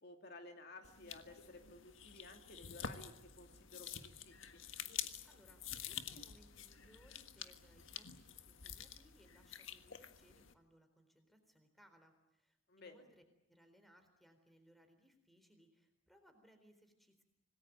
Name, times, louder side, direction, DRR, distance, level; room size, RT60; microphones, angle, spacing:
voice 1, 0.0-4.6 12.7-13.0, left 2 dB, 55° left, 4 dB, 2.5 m, -55 dB
sound 1, 0.8-10.5, left 8 dB, 80° left, 1.6 m, -49 dB
voice 2, 4.9-17.2, equal, ahead, 7 dB, 4.0 m, -68 dB
26.5 x 20.0 x 9.0 m, 0.86 s
head